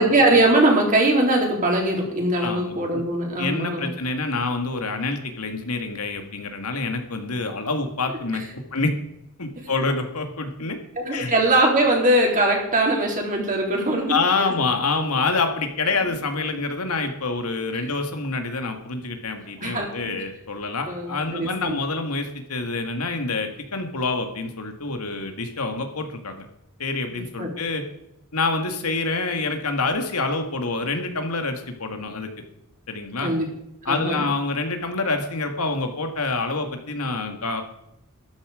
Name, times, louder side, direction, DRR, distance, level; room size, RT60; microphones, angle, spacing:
voice 1, 0.0-3.9 11.0-14.1 19.6-19.9 20.9-21.1 21.4-21.8 27.1-27.5 33.2-33.5 33.9-34.2, right 1 dB, 35° right, 0 dB, 3.7 m, -21 dB
voice 2, 2.4-3.0 3.4-8.4 8.7-8.9 9.4-10.8 11.1-11.3 14.1-26.5 26.8-27.8 28.3-32.3 32.9-33.3 33.9-37.6, left 3 dB, 90° left, 5 dB, 1.9 m, -27 dB
13.0 x 11.5 x 5.0 m, 0.83 s
head